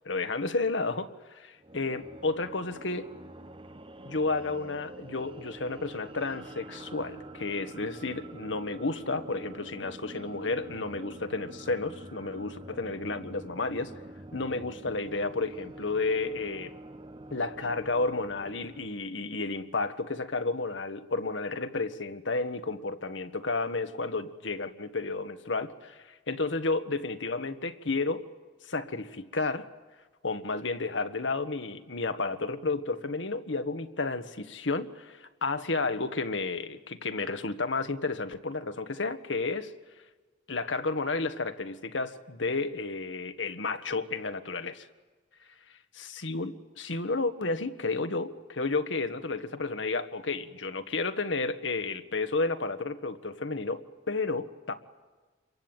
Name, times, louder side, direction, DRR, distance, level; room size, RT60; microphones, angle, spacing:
voice 1, 0.1-3.1 4.0-13.9 14.3-16.7 17.3-28.2 28.6-29.7 30.2-39.7 40.5-44.9 46.0-54.7, left 3 dB, 75° left, 9 dB, 1.5 m, -32 dB
sound 1, 1.6-18.9, right 1 dB, 30° right, 1.2 m, -46 dB
28.0 x 23.0 x 9.0 m, 1.3 s
head